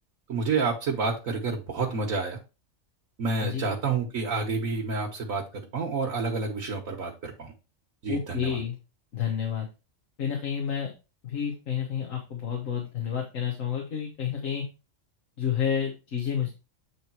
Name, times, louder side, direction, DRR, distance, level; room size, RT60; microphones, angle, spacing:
voice 1, 0.3-2.4 3.2-7.5 8.0-8.6, right 4 dB, 80° right, -1 dB, 1.7 m, -29 dB
voice 2, 8.1-8.8 9.1-9.7 10.2-10.9 11.2-14.7 15.4-16.5, left 8 dB, 75° left, 2 dB, 1.7 m, -30 dB
8.6 x 3.4 x 4.6 m, 0.29 s
omnidirectional pair, 1.4 m